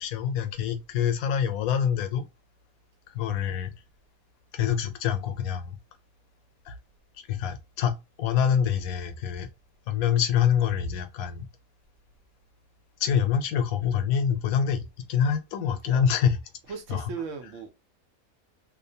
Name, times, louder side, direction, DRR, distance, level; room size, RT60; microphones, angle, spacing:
voice 1, 0.0-2.2 3.1-3.7 4.5-5.8 6.7-6.8 7.3-9.5 9.9-11.5 13.0-14.8 15.1-16.4 16.9-17.1, left 8 dB, 85° left, 1.0 m, -26 dB
voice 2, 16.7-17.7, right 5 dB, 70° right, 0.9 m, -37 dB
2.7 x 2.0 x 2.6 m
omnidirectional pair, 1.5 m